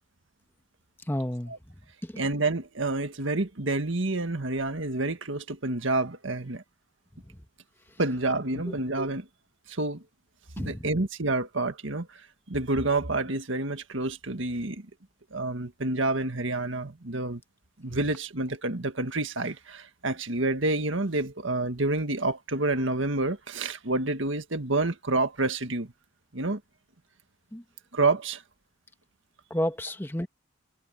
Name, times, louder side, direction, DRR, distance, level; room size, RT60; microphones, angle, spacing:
voice 1, 1.1-1.5 2.0-2.1 8.7-8.8 10.6-10.8 17.9-18.0 27.5-27.6 29.5-30.3, left 1 dB, 10° left, 1.3 m, -31 dB
voice 2, 2.2-6.6 8.0-9.3 9.7-10.0 10.6-12.2 12.5-14.9 15.3-17.4 17.8-25.9 26.3-26.6 27.9-28.4, right 2 dB, 70° right, 1.8 m, -28 dB
head